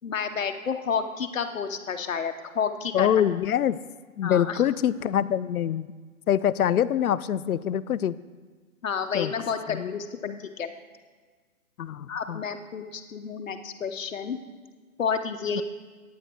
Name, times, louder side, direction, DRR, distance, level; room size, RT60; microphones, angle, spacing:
voice 1, 0.0-3.2 4.2-4.6 8.8-10.1 10.4-10.7 12.1-14.4 15.0-15.6, left 6 dB, 65° left, 7 dB, 1.0 m, -30 dB
voice 2, 2.9-3.8 4.2-5.9 6.3-8.2 9.1-9.3 9.7-10.0 10.3-10.4 11.8-12.4 15.6-15.7, left 10 dB, 80° left, 17 dB, 0.5 m, -25 dB
9.3 x 8.9 x 4.5 m, 1.5 s
hypercardioid pair, 155°, 43 cm